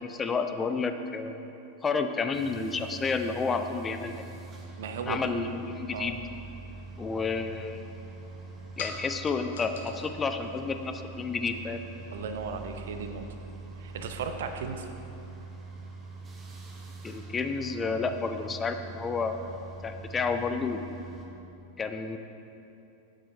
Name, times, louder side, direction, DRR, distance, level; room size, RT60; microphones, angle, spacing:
voice 1, 0.0-1.4 1.8-4.2 5.1-6.2 7.0-7.9 8.8-11.8 17.0-19.4 19.8-20.8 21.8-22.2, left 4 dB, 20° left, 7 dB, 0.4 m, -30 dB
sound 1, 2.3-21.3, right 3 dB, 20° right, 1.0 m, -44 dB
voice 2, 4.8-5.3 5.9-6.1 12.1-13.2 13.8-14.9, right 5 dB, 60° right, 7 dB, 0.5 m, -35 dB
sound 2, 7.2-12.7, left 4 dB, 60° left, 0.7 m, -47 dB
8.8 x 7.5 x 3.2 m, 2.9 s
figure-of-eight pair, 90°, 0 cm